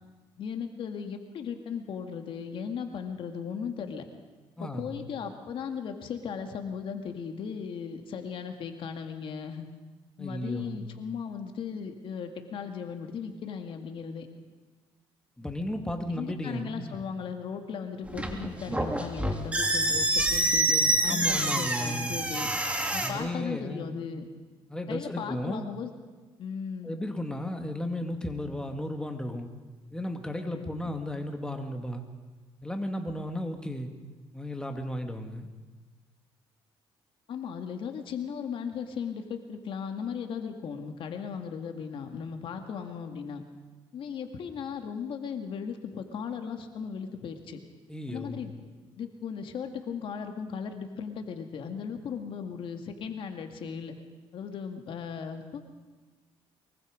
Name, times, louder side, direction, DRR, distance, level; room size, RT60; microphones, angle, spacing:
voice 1, 0.4-4.0 4.6-9.7 10.2-14.3 16.1-22.5 22.9-24.3 24.9-25.9 26.4-26.9 30.5-30.9 37.3-43.4 43.9-47.6 48.1-48.5 49.0-54.0 54.3-55.6, left 6 dB, 65° left, 5 dB, 2.2 m, -37 dB
voice 2, 4.6-5.0 10.2-10.9 15.4-17.0 21.1-22.2 23.0-24.0 24.7-25.7 26.8-29.5 29.9-32.0 32.6-33.9 34.3-35.5 47.9-48.4, left 1 dB, 10° left, 4 dB, 2.3 m, -34 dB
sound 1, 18.0-23.1, right 1 dB, 15° right, 2.9 m, -27 dB
23.5 x 22.5 x 5.2 m, 1.3 s
cardioid pair, 95°, 10 cm